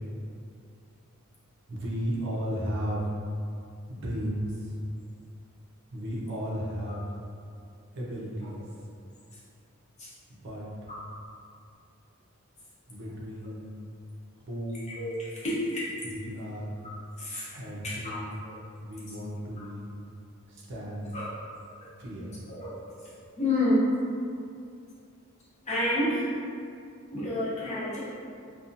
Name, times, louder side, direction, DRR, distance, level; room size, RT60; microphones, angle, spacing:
voice 1, 1.7-3.2 3.9-4.8 5.9-7.0 7.9-8.6 10.3-10.9 12.9-13.7 14.3-14.9 16.0-16.8 17.5-18.3 18.8-19.9 20.5-21.1 22.0-22.3, equal, 60° right, -5 dB, 0.6 m, -34 dB
voice 2, 14.9-15.8 16.8-16.9 17.2-17.5 17.8-18.2 18.4-18.6 21.1-21.3 22.5-22.8 23.0-23.1 23.4-23.9 25.7-26.3 27.1-28.0, left 1 dB, 35° left, -9 dB, 0.7 m, -29 dB
2.6 x 2.3 x 2.5 m, 2.4 s
head